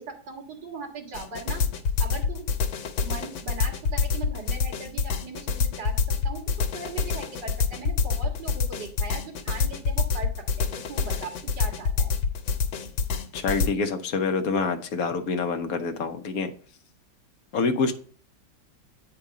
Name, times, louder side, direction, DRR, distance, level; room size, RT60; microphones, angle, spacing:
voice 1, 0.0-1.6 2.0-2.5 3.0-6.0 6.2-10.3 10.6-12.1, right 4 dB, 65° right, -1 dB, 2.5 m, -39 dB
sound 1, 1.1-13.7, left 5 dB, 85° left, 1.5 m, -26 dB
voice 2, 13.3-16.5 17.5-17.9, left 4 dB, 60° left, 6 dB, 1.1 m, -26 dB
8.5 x 4.7 x 4.9 m, 0.42 s
omnidirectional pair, 2.1 m